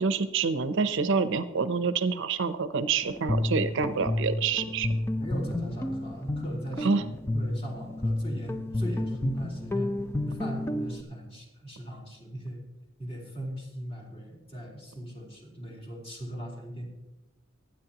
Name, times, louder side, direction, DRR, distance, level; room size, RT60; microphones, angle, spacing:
voice 1, 0.0-4.9 6.8-7.0, right 5 dB, 65° right, 11 dB, 0.7 m, -27 dB
Guitar, 3.0-11.0, left 1 dB, 10° left, 0.6 m, -31 dB
voice 2, 5.2-6.9 7.3-9.9 10.2-12.6 13.0-16.9, equal, 30° left, -2 dB, 4.1 m, -39 dB
24.5 x 9.7 x 2.9 m, 1.0 s
head